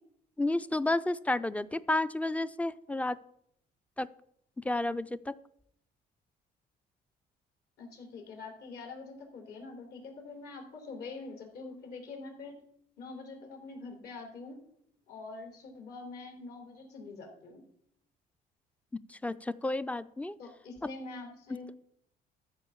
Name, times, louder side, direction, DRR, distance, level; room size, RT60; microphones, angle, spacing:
voice 1, 0.4-3.2 4.0-4.1 4.6-5.3 19.1-20.4, left 2 dB, 10° left, 15 dB, 0.4 m, -31 dB
voice 2, 7.8-12.6 13.0-14.6 15.1-17.6 20.4-21.7, left 3 dB, 70° left, 2 dB, 3.5 m, -45 dB
13.5 x 4.7 x 7.2 m, 0.72 s
cardioid pair, 110°, 17 cm